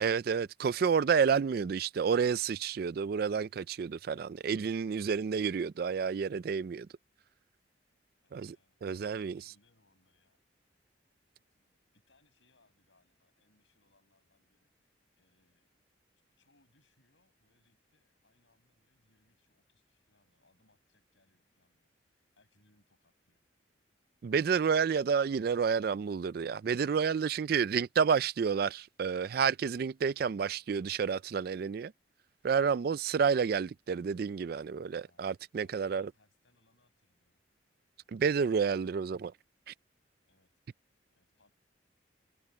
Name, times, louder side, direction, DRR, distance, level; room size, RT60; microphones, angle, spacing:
voice 1, 0.0-6.9 8.3-8.6 8.8-9.4 24.2-31.9 32.4-36.1 38.1-39.3 39.7-39.8, right 6 dB, 55° right, 0.3 m, -30 dB
voice 2, 8.2-8.8 9.1-10.4 11.5-15.7 16.2-23.4 34.7-35.3 35.6-37.4 40.3-40.6 41.1-41.5, left 2 dB, 90° left, 7.6 m, -72 dB
head